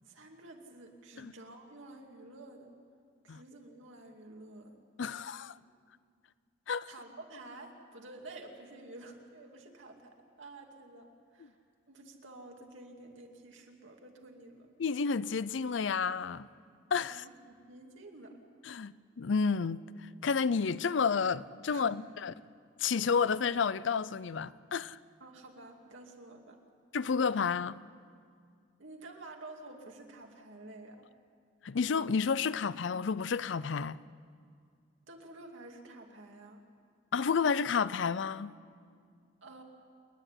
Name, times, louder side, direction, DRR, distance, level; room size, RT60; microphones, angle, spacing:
voice 1, 0.0-2.7 3.2-4.8 6.9-11.6 11.9-14.7 17.1-18.4 21.7-22.0 25.2-26.6 28.8-31.0 35.0-36.6 39.4-39.6, right 2 dB, 85° right, 2.5 m, -50 dB
voice 2, 5.0-5.5 6.7-6.9 14.8-16.5 16.9-17.2 18.7-19.8 20.2-22.3 22.8-25.0 26.9-27.8 31.6-34.0 37.1-38.5, left 5 dB, 70° left, 0.5 m, -30 dB
28.5 x 10.0 x 9.9 m
head